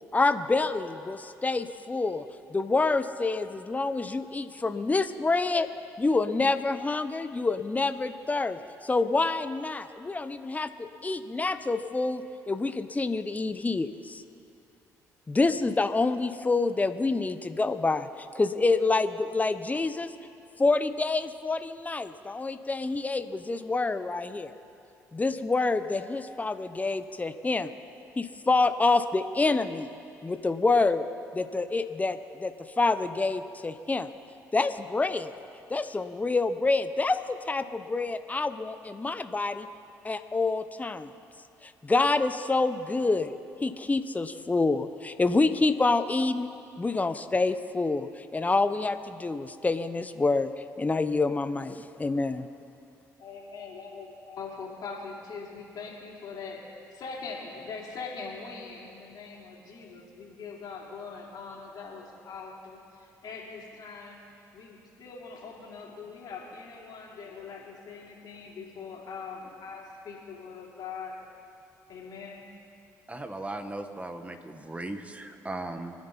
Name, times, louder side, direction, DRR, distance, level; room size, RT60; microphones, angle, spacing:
voice 1, 0.1-2.2 2.5-5.7 6.0-14.2 15.3-20.1 20.6-24.5 25.1-27.7 28.2-29.9 30.2-31.0 31.3-34.1 34.5-35.3 35.7-39.7 40.0-41.1 41.6-43.4 43.6-46.5 46.8-50.5 50.8-52.5, left 3 dB, 20° left, 10 dB, 0.8 m, -27 dB
voice 2, 53.2-56.6 56.9-64.2 64.5-71.2 71.9-72.5, left 5 dB, 65° left, -3 dB, 3.7 m, -42 dB
voice 3, 73.1-75.9, right 2 dB, 15° right, 7 dB, 1.5 m, -37 dB
25.5 x 9.7 x 4.1 m, 2.6 s
supercardioid pair, 65°, 8 cm